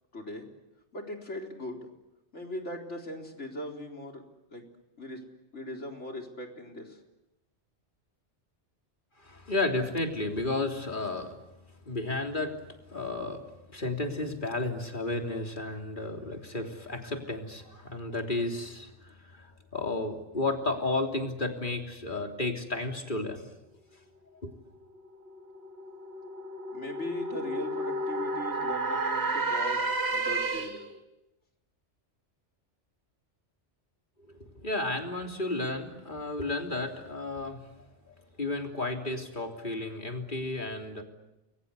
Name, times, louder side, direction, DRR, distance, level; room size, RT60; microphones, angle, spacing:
voice 1, 0.1-0.5 0.9-1.8 2.3-4.2 4.5-4.7 5.0-5.2 5.5-7.0 26.7-30.8, left 1 dB, 85° left, 2 dB, 4.4 m, -39 dB
voice 2, 9.2-11.4 11.9-12.6 12.9-13.4 13.7-23.4 24.4-24.5 34.3-41.0, left 2 dB, 45° left, 3 dB, 3.5 m, -33 dB
sound 1, 24.8-31.0, right 2 dB, 65° right, 2.3 m, -32 dB
30.0 x 22.5 x 8.3 m, 0.97 s
omnidirectional pair, 1.2 m